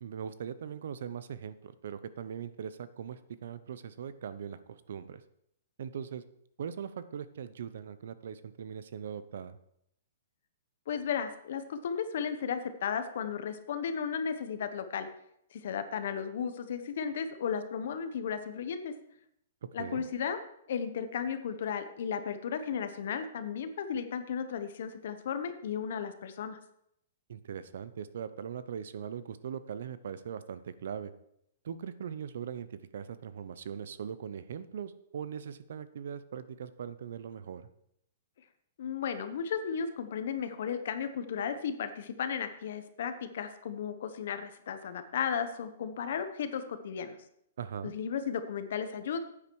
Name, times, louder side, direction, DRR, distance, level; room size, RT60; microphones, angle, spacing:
voice 1, 0.0-5.2 5.8-6.2 6.6-9.6 19.8-20.0 27.3-31.1 31.6-37.7 47.6-47.9, right 8 dB, 65° right, 14 dB, 0.8 m, -40 dB
voice 2, 10.9-15.1 15.5-18.9 19.7-20.4 20.7-26.6 38.8-47.2 47.8-49.2, left 7 dB, 60° left, 9 dB, 1.0 m, -34 dB
9.9 x 8.7 x 4.7 m, 0.75 s
hypercardioid pair, 160°, 0 cm